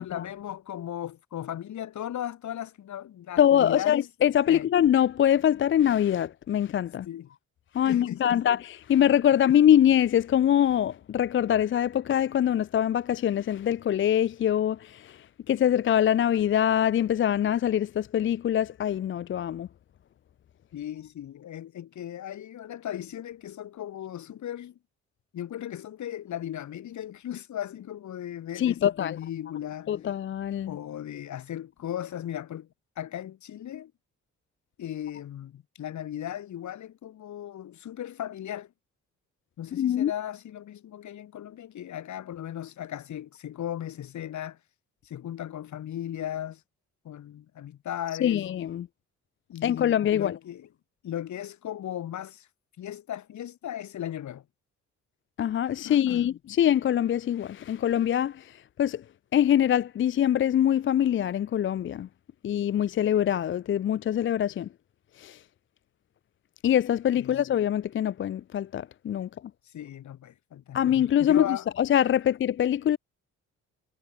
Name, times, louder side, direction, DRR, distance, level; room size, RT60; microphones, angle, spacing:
voice 1, 0.0-4.1 4.5-4.7 7.0-7.3 7.8-8.5 20.7-24.8 25.3-30.0 30.7-32.7 33.0-33.9 34.8-38.7 39.6-44.6 45.0-46.6 47.1-48.4 49.5-50.7 51.0-52.5 52.8-54.5 55.8-56.3 67.2-67.4 69.7-70.9 71.2-71.7, left 11 dB, 70° left, 6.8 m, -37 dB
voice 2, 3.4-7.1 7.7-8.6 8.9-15.1 15.5-19.7 28.6-29.2 29.9-30.7 39.8-40.1 48.2-48.9 49.6-50.3 55.4-58.4 58.8-59.0 59.3-62.1 62.4-64.7 65.2-65.4 66.6-69.3 70.7-71.4 71.8-73.0, left 10 dB, 40° left, 0.5 m, -24 dB
cardioid pair, 90°, 30 cm